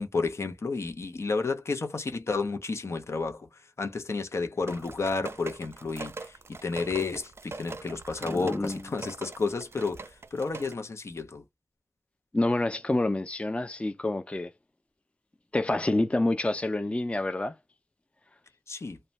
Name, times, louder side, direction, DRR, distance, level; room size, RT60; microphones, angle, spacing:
voice 1, 0.0-3.5 3.8-11.4 18.7-19.0, left 4 dB, 70° left, 0.6 m, -31 dB
sound 1, 4.7-10.7, right 3 dB, 60° right, 0.4 m, -42 dB
voice 2, 8.2-8.8 12.3-14.5 15.5-17.5, left 2 dB, 25° left, 0.4 m, -27 dB
2.5 x 2.2 x 3.0 m
wide cardioid pair, 55°, 5 cm